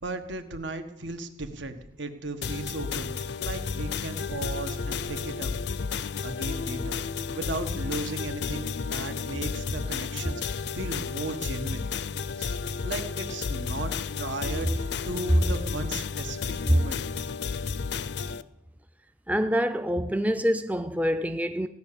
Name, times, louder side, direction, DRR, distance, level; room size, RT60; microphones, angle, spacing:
voice 1, 0.0-5.5 6.2-7.0 7.3-11.9 12.3-17.0, right 2 dB, 80° right, 1.6 m, -36 dB
sound 1, 2.4-18.4, left 5 dB, 65° left, 0.5 m, -32 dB
voice 2, 19.3-21.7, equal, 10° right, 0.4 m, -25 dB
16.5 x 9.8 x 7.0 m
head